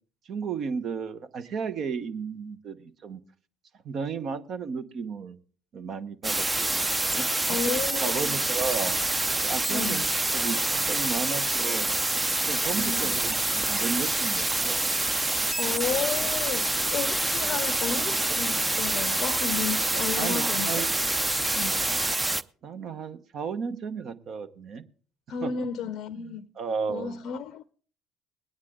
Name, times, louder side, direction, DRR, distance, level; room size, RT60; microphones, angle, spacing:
voice 1, 0.3-3.2 3.8-5.4 5.7-6.7 7.1-7.6 8.0-8.9 9.4-10.1 10.3-11.9 12.5-14.8 20.2-20.9 21.3-21.4 22.6-24.8 25.4-25.7 26.2-27.2, right 5 dB, 55° right, 1.0 m, -34 dB
sound 1, 6.2-22.4, right 2 dB, 15° right, 0.6 m, -26 dB
voice 2, 7.5-8.4 9.7-10.1 12.8-13.1 15.5-20.9 21.5-21.8 25.3-26.5 26.9-27.7, left 7 dB, 55° left, 0.6 m, -33 dB
21.0 x 9.6 x 3.7 m
hypercardioid pair, 65°, 0 cm